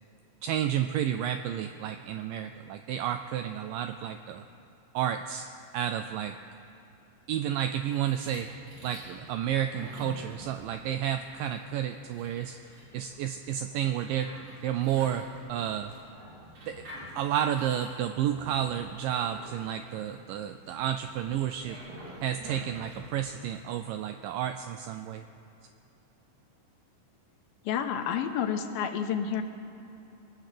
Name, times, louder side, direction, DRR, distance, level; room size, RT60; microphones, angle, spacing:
voice 1, 0.4-4.4 4.9-6.4 7.3-8.5 8.8-12.6 12.9-14.3 14.6-15.9 16.7-16.8 17.2-21.8 22.2-25.2, right 10 dB, 80° right, 8 dB, 2.0 m, -31 dB
sound 1, 7.7-23.1, right 1 dB, 60° right, 4.9 m, -48 dB
voice 2, 27.6-29.4, left 8 dB, 80° left, 6 dB, 2.6 m, -29 dB
24.0 x 8.1 x 6.7 m, 2.9 s
omnidirectional pair, 4.3 m